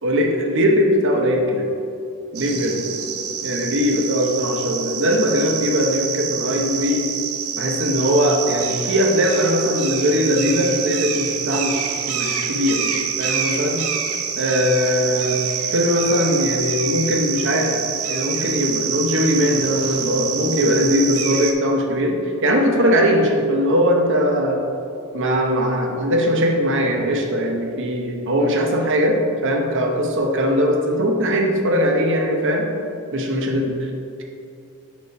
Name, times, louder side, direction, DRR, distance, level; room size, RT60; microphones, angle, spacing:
voice 1, 0.0-1.7 2.3-2.8 3.4-7.0 7.6-13.8 14.4-15.4 15.7-17.7 18.1-24.6 25.1-29.2 29.4-32.7 33.1-33.7, equal, 60° right, 1 dB, 0.9 m, -20 dB
sound 1, 2.3-21.5, right 7 dB, 85° right, 0.6 m, -26 dB
5.2 x 4.9 x 4.6 m, 2.5 s
head